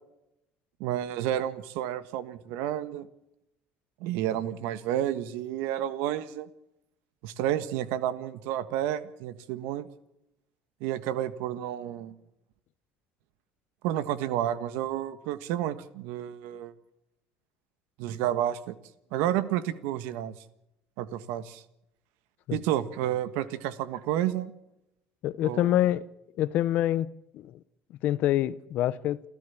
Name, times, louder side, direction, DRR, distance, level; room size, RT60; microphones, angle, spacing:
voice 1, 0.8-3.1 4.0-6.5 7.2-9.9 10.8-12.1 13.8-16.7 18.0-18.7 19.1-20.3 21.0-21.6 22.5-24.5 25.4-25.8, right 12 dB, 80° right, 1.5 m, -30 dB
voice 2, 25.2-26.0 26.4-27.1 27.3-27.6 28.0-29.2, left 13 dB, 50° left, 0.9 m, -26 dB
29.0 x 13.5 x 7.2 m
cardioid pair, 170°, 3 cm